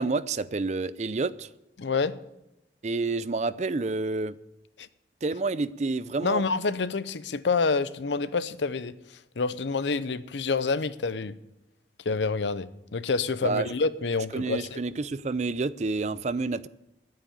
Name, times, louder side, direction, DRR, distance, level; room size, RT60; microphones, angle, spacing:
voice 1, 0.0-1.5 2.8-4.3 5.2-6.4 13.4-13.7 14.3-16.7, right 3 dB, 40° right, 0.4 m, -29 dB
voice 2, 1.8-2.1 4.8-4.9 6.2-8.9 9.4-11.3 12.0-14.8, left 4 dB, 90° left, 0.7 m, -27 dB
10.0 x 9.1 x 8.6 m
head